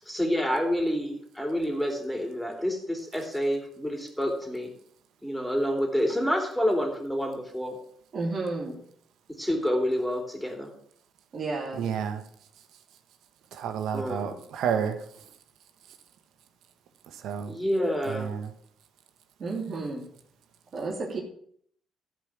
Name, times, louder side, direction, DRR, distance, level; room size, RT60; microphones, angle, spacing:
voice 1, 0.1-4.7 5.2-7.8 9.4-10.7 13.9-14.4 17.5-18.3, equal, 5° left, 3.3 m, -28 dB
voice 2, 8.1-8.8 11.3-11.9 19.4-20.0 20.7-21.2, right 3 dB, 50° right, 2.9 m, -32 dB
voice 3, 11.7-12.2 13.6-15.0 17.2-17.5 18.1-18.5, right 7 dB, 85° right, 1.4 m, -30 dB
14.5 x 5.1 x 7.4 m
cardioid pair, 90°, 0 cm